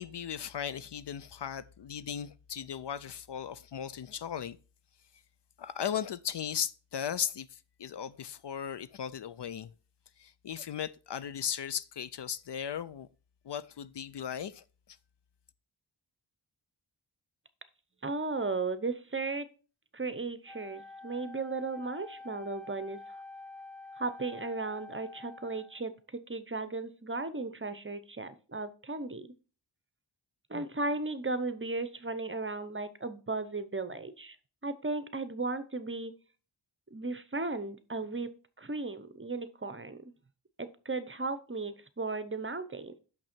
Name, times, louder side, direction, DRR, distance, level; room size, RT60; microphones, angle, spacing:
voice 1, 0.0-4.6 5.6-9.7 10.2-13.1 13.4-14.6, left 8 dB, 60° left, 0.5 m, -37 dB
voice 2, 18.0-19.5 19.9-23.0 24.0-29.3 30.5-34.4 34.6-36.1 36.9-38.3 38.6-40.1 40.6-42.9, right 3 dB, 25° right, 0.7 m, -35 dB
Wind instrument woodwind instrument, 20.5-25.9, left 3 dB, 5° left, 1.0 m, -48 dB
6.1 x 6.0 x 4.4 m
wide cardioid pair, 55°, 48 cm